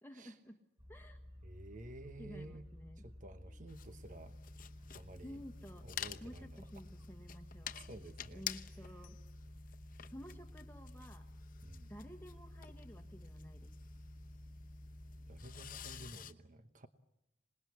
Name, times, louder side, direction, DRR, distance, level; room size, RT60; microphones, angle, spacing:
voice 1, 0.0-0.6 0.9-1.2 2.2-3.1 3.5-3.6 5.2-5.9 6.2-7.8 8.3-9.2 10.1-11.3 11.9-13.7, equal, 10° left, 4 dB, 1.4 m, -53 dB
sound 1, 0.8-16.1, left 1 dB, 30° right, 7.6 m, -54 dB
voice 2, 1.4-2.7 3.0-4.4 4.9-5.4 5.8-6.7 7.9-8.4 11.6-11.9 15.3-16.9, right 1 dB, 45° right, 9 dB, 1.0 m, -52 dB
sound 2, 3.7-16.3, left 9 dB, 50° left, 1.1 m, -50 dB
26.5 x 20.0 x 8.3 m, 0.91 s
head